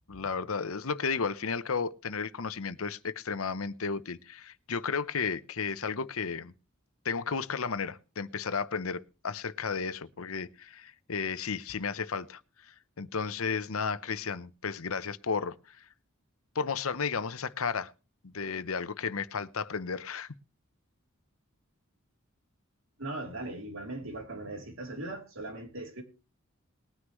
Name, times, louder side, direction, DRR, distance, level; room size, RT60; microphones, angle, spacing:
voice 1, 0.1-6.5 7.0-15.9 16.5-17.9 18.2-20.3, left 5 dB, 85° left, 0.8 m, -33 dB
voice 2, 23.0-26.0, right 2 dB, 70° right, 3.3 m, -39 dB
20.0 x 9.7 x 3.1 m
head